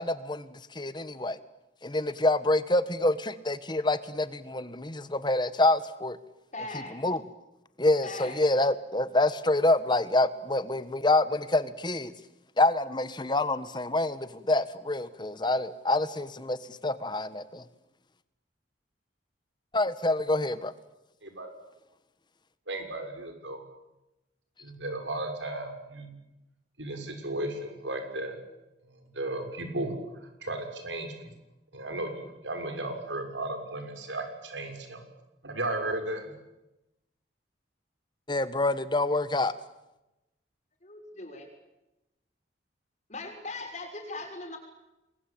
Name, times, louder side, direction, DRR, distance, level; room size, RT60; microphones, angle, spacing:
voice 1, 0.0-1.4 1.8-6.2 7.0-7.2 7.8-12.1 12.6-17.6 19.7-20.7 38.3-39.5, left 2 dB, 25° left, 13 dB, 1.3 m, -27 dB
voice 2, 6.5-7.0 8.0-8.4 40.8-41.5 43.1-44.6, left 2 dB, 40° left, 3 dB, 6.2 m, -39 dB
voice 3, 22.7-23.6 24.6-26.1 26.8-28.4 28.9-29.9 30.4-31.1 31.7-35.0 35.4-36.2, right 2 dB, 85° right, 5 dB, 6.4 m, -35 dB
28.5 x 22.5 x 8.7 m, 0.95 s
head